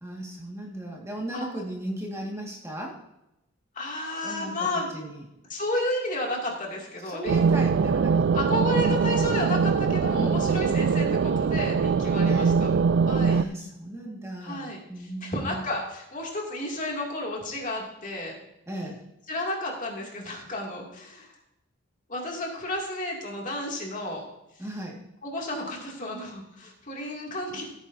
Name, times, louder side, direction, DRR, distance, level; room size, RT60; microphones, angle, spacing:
voice 1, 0.0-3.0 4.2-4.7 4.9-5.2 7.0-8.3 10.2-10.5 12.2-12.5 13.3-15.6 18.7-19.0 24.6-25.0, right 1 dB, 15° right, -1 dB, 1.7 m, -36 dB
voice 2, 3.7-4.9 5.5-7.4 8.3-12.7 13.1-13.4 14.4-18.3 19.3-21.3 22.1-24.2 25.2-27.6, left 1 dB, 40° left, -1 dB, 2.4 m, -32 dB
sound 1, 7.3-13.4, right 5 dB, 60° right, 0.3 m, -22 dB
15.5 x 9.1 x 2.7 m, 0.87 s
head